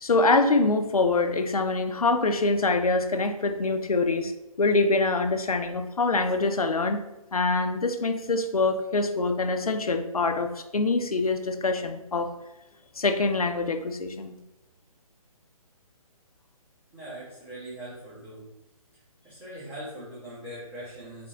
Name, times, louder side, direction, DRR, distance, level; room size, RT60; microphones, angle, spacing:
voice 1, 0.0-4.3 4.6-7.0 7.3-12.3 13.0-14.4, left 3 dB, 75° left, 8 dB, 0.5 m, -24 dB
voice 2, 16.9-18.5 19.2-21.3, right 1 dB, 10° right, -13 dB, 1.1 m, -41 dB
4.2 x 3.3 x 2.7 m, 0.96 s
figure-of-eight pair, 140°, 19 cm